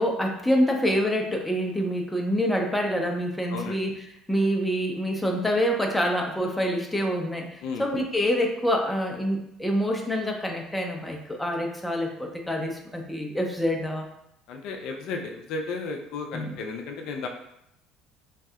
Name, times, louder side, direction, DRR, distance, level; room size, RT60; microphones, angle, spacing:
voice 1, 0.0-3.9 4.3-14.1 16.3-16.6, equal, 10° left, 1 dB, 0.5 m, -26 dB
voice 2, 3.5-3.8 7.6-7.8 14.5-17.3, left 4 dB, 70° left, 2 dB, 0.4 m, -33 dB
3.1 x 2.7 x 2.3 m, 0.78 s
supercardioid pair, 85°, 0 cm